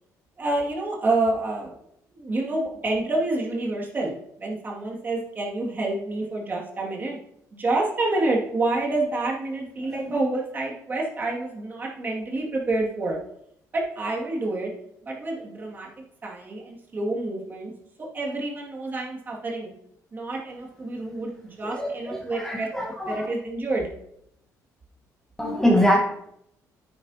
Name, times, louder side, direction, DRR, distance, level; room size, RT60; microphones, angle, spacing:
voice 1, 0.4-1.7 2.1-7.2 7.5-13.2 13.7-14.7 15.0-15.9 16.2-17.7 18.0-19.7 20.1-21.3 21.6-23.9, right 2 dB, 30° right, -2 dB, 2.2 m, -28 dB
voice 2, 9.8-10.2 21.6-23.2 25.4-26.0, equal, 5° left, -1 dB, 1.3 m, -24 dB
9.5 x 9.0 x 2.9 m, 0.76 s
cardioid pair, 125°, 6 cm